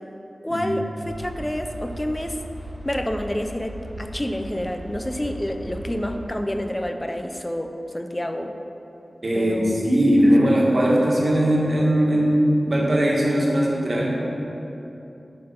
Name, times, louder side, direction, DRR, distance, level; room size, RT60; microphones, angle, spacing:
voice 1, 0.4-2.4 2.8-8.5 9.3-9.8, left 1 dB, 15° left, 6 dB, 0.5 m, -28 dB
sound 1, 1.0-6.2, right 1 dB, 85° right, 1.6 m, -37 dB
voice 2, 9.2-14.1, equal, 55° right, -4 dB, 1.6 m, -19 dB
11.0 x 4.0 x 5.1 m, 2.9 s
wide cardioid pair, 90°, 0 cm